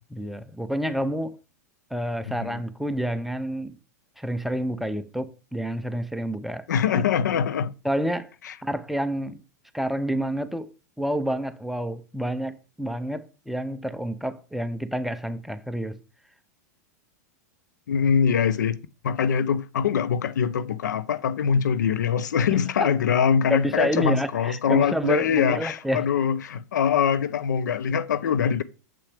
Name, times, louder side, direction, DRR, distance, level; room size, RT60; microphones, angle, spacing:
voice 1, 0.1-1.4 1.9-3.8 4.2-6.7 6.9-7.0 7.8-8.3 8.6-9.4 9.7-10.7 11.0-16.0 22.8-22.9 23.5-26.1, equal, ahead, 0.5 m, -28 dB
voice 2, 6.7-7.7 8.4-8.5 17.9-18.8 19.0-28.6, left 7 dB, 90° left, 0.5 m, -23 dB
7.0 x 5.9 x 3.3 m
hypercardioid pair, 120°, 9 cm